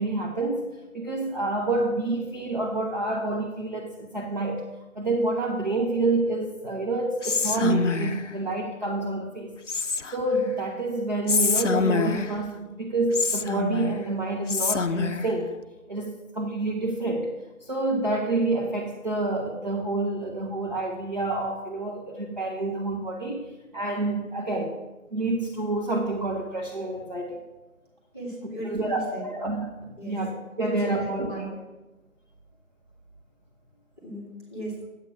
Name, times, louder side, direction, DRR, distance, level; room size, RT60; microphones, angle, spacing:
voice 1, 0.0-4.7 5.0-9.5 10.1-15.5 15.9-17.3 17.6-23.5 23.7-24.7 25.1-27.4 28.6-31.6, right 2 dB, 30° right, -1 dB, 0.9 m, -28 dB
Whispering, 7.2-8.3 9.7-10.4 11.3-12.5 13.1-14.1 14.5-15.3, left 4 dB, 60° left, 0.6 m, -26 dB
voice 2, 28.1-29.2 30.0-30.2 30.6-31.5 34.0-34.7, right 1 dB, 10° right, -3 dB, 2.0 m, -36 dB
9.5 x 8.3 x 6.0 m, 1.1 s
figure-of-eight pair, 160°, 43 cm